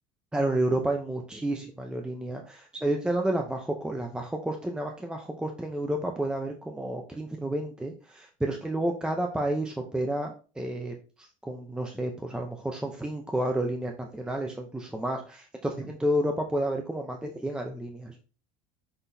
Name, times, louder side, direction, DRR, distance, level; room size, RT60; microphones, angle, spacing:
voice 1, 0.3-18.1, right 1 dB, 5° right, 3 dB, 0.6 m, -30 dB
6.0 x 5.9 x 2.7 m, 0.36 s
supercardioid pair, 135°, 18 cm